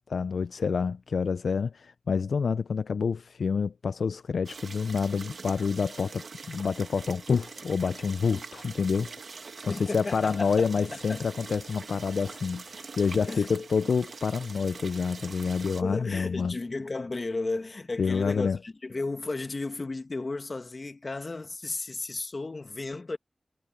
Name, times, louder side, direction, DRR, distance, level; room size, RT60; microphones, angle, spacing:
voice 1, 0.1-16.6 18.0-18.6, left 5 dB, 85° left, 0.3 m, -28 dB
sound 1, 4.4-15.8, right 4 dB, 75° right, 1.5 m, -44 dB
voice 2, 9.7-10.7 11.1-11.3 13.3-13.5 15.8-23.2, left 3 dB, 50° left, 1.8 m, -34 dB
cardioid pair, 45°, 0 cm